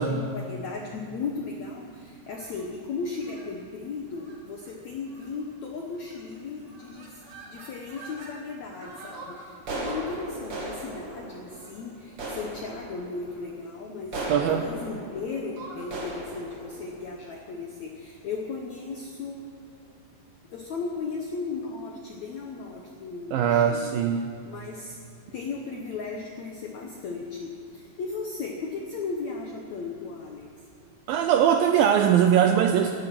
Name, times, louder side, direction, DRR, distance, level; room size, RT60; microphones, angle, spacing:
voice 1, 0.0-7.2 7.5-19.9 20.5-25.0 25.3-30.5, left 4 dB, 75° left, 1 dB, 1.6 m, -36 dB
sound 1, 2.3-2.7 3.2-3.5 4.1-4.4 4.7-4.8 5.1-5.5 6.0-6.4 6.7-8.3 8.7-17.9, right 2 dB, 40° right, 2.9 m, -39 dB
voice 2, 14.3-14.7 23.3-24.2 31.1-32.9, right 9 dB, 80° right, 6 dB, 2.1 m, -21 dB
16.5 x 12.0 x 6.0 m, 2.5 s
omnidirectional pair, 4.8 m